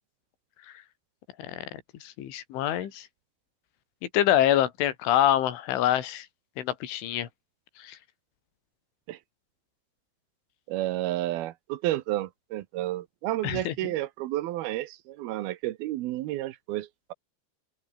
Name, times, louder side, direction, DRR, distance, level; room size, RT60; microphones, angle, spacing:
voice 1, 1.4-3.1 4.1-6.3 6.6-7.3 7.8-8.0 13.4-13.7, left 12 dB, 75° left, 4.9 m, -26 dB
voice 2, 10.7-17.1, right 15 dB, 75° right, 2.2 m, -31 dB
omnidirectional pair, 5.7 m